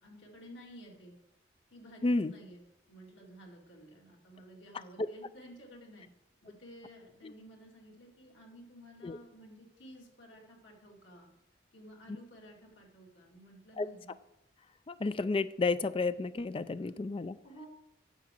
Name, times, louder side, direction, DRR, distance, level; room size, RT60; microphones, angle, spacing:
voice 1, 0.0-1.1 1.7-2.6 2.9-6.1 6.4-11.3 11.7-14.1 16.8-16.9 17.4-17.7, equal, 90° left, 0 dB, 2.4 m, -53 dB
voice 2, 2.0-2.3 5.0-5.1 9.0-9.2 13.8-13.9 14.9-17.4, left 3 dB, 30° left, 14 dB, 0.3 m, -31 dB
9.8 x 7.3 x 4.5 m, 0.83 s
head